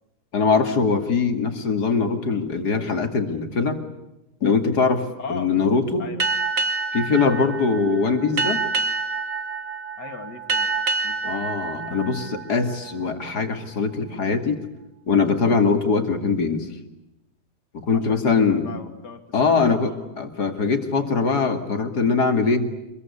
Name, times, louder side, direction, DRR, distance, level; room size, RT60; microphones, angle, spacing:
voice 1, 0.3-3.8 4.4-6.1 6.9-8.6 11.2-14.6 15.1-16.7 17.9-18.7 19.3-22.7, left 4 dB, 70° left, 6 dB, 2.9 m, -22 dB
voice 2, 5.2-5.5 6.0-6.2 10.0-10.7 11.0-11.4 17.9-20.2, left 5 dB, 85° left, 7 dB, 3.0 m, -38 dB
Boat Water vehicle, 6.2-13.3, right 4 dB, 55° right, 1.7 m, -27 dB
26.0 x 22.0 x 9.7 m, 0.91 s
omnidirectional pair, 1.8 m